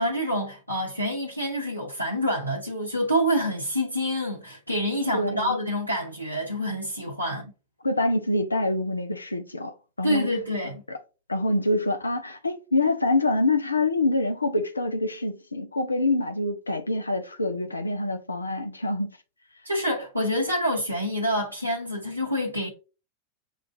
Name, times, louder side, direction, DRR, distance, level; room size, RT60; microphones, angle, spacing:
voice 1, 0.0-7.5 10.0-10.8 19.6-22.7, equal, 85° right, 0.8 m, -27 dB
voice 2, 5.1-5.6 7.8-10.3 10.9-11.0 11.3-19.1, left 2 dB, 80° left, 0.5 m, -26 dB
6.2 x 2.5 x 2.5 m
figure-of-eight pair, 90°, 0 cm